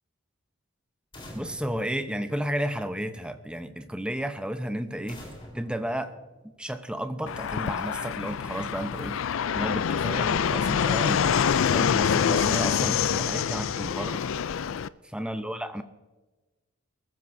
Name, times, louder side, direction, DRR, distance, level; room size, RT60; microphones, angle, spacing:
sound 1, 1.1-2.9 5.1-6.8, equal, 25° left, 3.9 m, -47 dB
voice 1, 1.3-5.2 5.5-6.1 6.6-9.3 9.5-11.4 11.7-14.2 15.0-15.8, right 1 dB, 5° right, 8 dB, 0.7 m, -32 dB
Fixed-wing aircraft airplane, 7.3-14.9, left 7 dB, 65° left, 0.4 m, -26 dB
23.0 x 14.5 x 2.7 m, 1.2 s
head